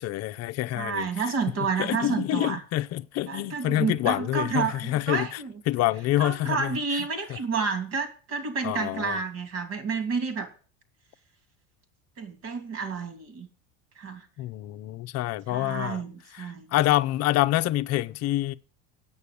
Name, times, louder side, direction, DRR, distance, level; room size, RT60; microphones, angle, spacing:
voice 1, 0.0-1.1 1.8-5.4 5.7-7.1 8.6-9.2 14.4-16.0 16.3-18.5, left 15 dB, 45° left, 0.7 m, -27 dB
voice 2, 0.7-2.6 3.3-5.5 6.2-10.5 12.2-13.5 14.0-14.2 15.5-16.7, right 5 dB, 50° right, 3.1 m, -30 dB
8.6 x 6.8 x 8.4 m
supercardioid pair, 115°, 35 cm